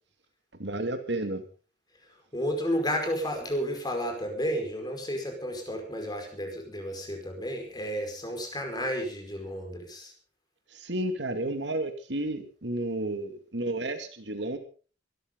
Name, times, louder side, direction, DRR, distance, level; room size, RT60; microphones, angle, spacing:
voice 1, 0.6-1.4 10.7-14.6, right 1 dB, 70° right, 7 dB, 2.4 m, -32 dB
voice 2, 2.1-10.1, equal, 25° left, 3 dB, 5.1 m, -32 dB
23.5 x 13.5 x 3.9 m, 0.37 s
head